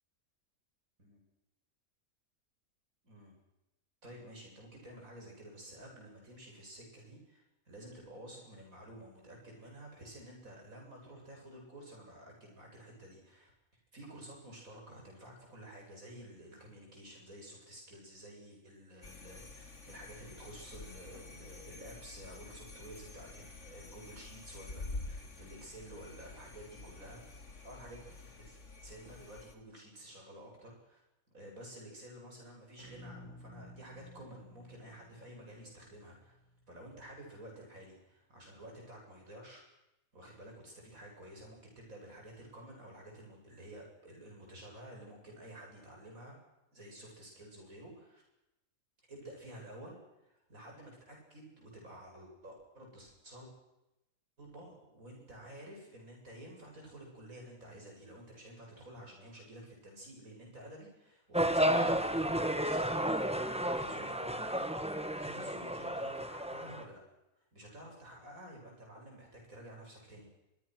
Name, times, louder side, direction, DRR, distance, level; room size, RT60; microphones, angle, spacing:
voice 1, 4.0-13.5 13.9-27.3 27.6-28.6 28.8-31.0 31.3-36.4 36.7-39.6 40.1-46.4 46.7-48.2 49.1-53.5 54.4-67.0 67.4-70.3, right 1 dB, 70° right, 0 dB, 7.9 m, -51 dB
sound 1, 19.0-29.5, left 3 dB, 55° left, 2.4 m, -48 dB
sound 2, 32.8-37.0, equal, 55° right, 7.2 m, -55 dB
sound 3, 61.3-66.8, right 1 dB, 5° right, 1.3 m, -32 dB
24.5 x 22.5 x 6.4 m, 0.92 s
omnidirectional pair, 1.5 m